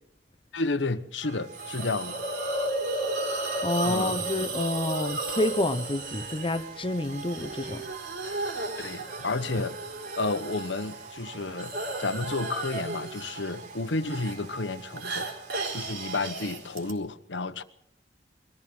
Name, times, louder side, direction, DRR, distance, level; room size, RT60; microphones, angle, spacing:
voice 1, 0.5-2.2 3.8-4.3 8.8-9.8 10.2-11.7 12.0-15.3 15.7-17.6, left 3 dB, 75° left, 1.1 m, -31 dB
sound 1, 1.2-16.2, right 5 dB, 40° right, 1.1 m, -46 dB
Hiss, 1.5-16.9, right 2 dB, 60° right, 4.3 m, -34 dB
voice 2, 3.6-7.8, left 1 dB, 30° left, 0.9 m, -28 dB
23.0 x 14.5 x 7.8 m
head